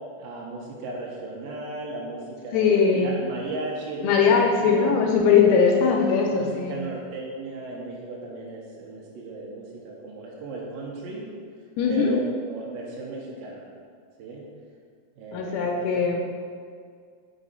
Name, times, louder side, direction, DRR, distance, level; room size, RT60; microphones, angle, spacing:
voice 1, 0.2-4.9 5.4-5.9 6.3-11.4 11.9-13.7 14.2-14.5 15.2-15.9, right 2 dB, 75° right, -4 dB, 2.3 m, -35 dB
voice 2, 2.5-3.1 4.0-6.8 11.8-12.1 15.3-16.2, left 6 dB, 80° left, 1 dB, 2.4 m, -20 dB
6.1 x 4.0 x 5.5 m, 2.1 s
omnidirectional pair, 4.7 m